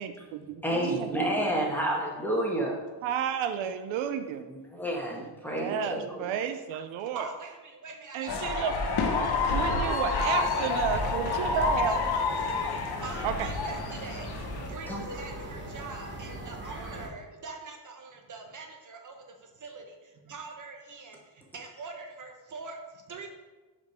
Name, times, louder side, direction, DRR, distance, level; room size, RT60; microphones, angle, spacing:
voice 1, 0.0-1.2 3.0-4.5 5.5-7.3 8.1-8.7 9.5-12.0 13.2-13.5, right 8 dB, 75° right, 9 dB, 0.6 m, -31 dB
voice 2, 0.6-2.8 4.5-6.1 14.9-15.0, right 1 dB, 5° left, -2 dB, 1.5 m, -29 dB
voice 3, 7.1-8.8 9.2-23.3, right 4 dB, 40° right, 3 dB, 1.0 m, -44 dB
sound 1, 8.3-14.7, left 4 dB, 50° left, 1.1 m, -29 dB
sound 2, 10.2-17.1, right 1 dB, 25° right, 1.2 m, -40 dB
5.2 x 5.0 x 4.7 m, 1.2 s
cardioid pair, 95°, 48 cm